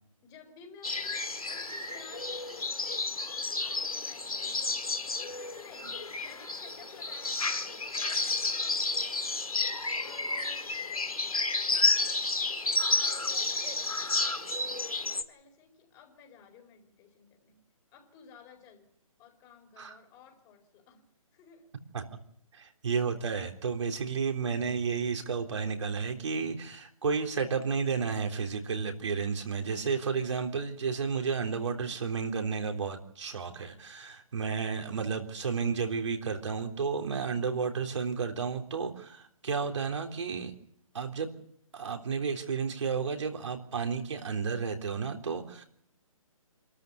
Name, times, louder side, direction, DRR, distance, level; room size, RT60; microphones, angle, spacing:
voice 1, 0.2-2.9 3.4-4.6 5.2-9.6 9.9-10.8 11.6-12.0 12.3-17.6 17.9-18.9 19.2-21.7, left 6 dB, 20° left, 4 dB, 4.6 m, -55 dB
sound 1, 0.8-15.2, left 3 dB, 85° left, 1.9 m, -31 dB
voice 2, 22.5-40.5 40.9-41.3 41.7-45.6, right 5 dB, 55° right, 4 dB, 3.7 m, -32 dB
27.0 x 13.5 x 8.3 m, 0.72 s
figure-of-eight pair, 145°, 18 cm